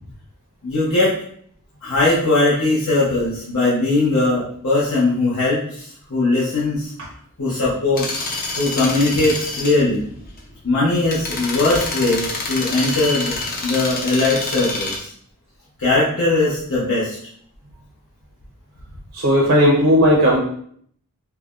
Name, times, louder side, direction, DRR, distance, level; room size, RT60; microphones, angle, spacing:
voice 1, 0.6-1.1 1.8-6.9 7.4-8.1 8.6-10.0 10.6-13.4 13.6-15.1 15.8-17.2, left 2 dB, 70° left, -9 dB, 0.9 m, -19 dB
sound 1, 8.0-15.0, left 3 dB, 40° left, 0.6 m, -27 dB
voice 2, 19.1-20.4, equal, 65° right, -2 dB, 0.6 m, -15 dB
4.7 x 2.2 x 2.4 m, 0.62 s
head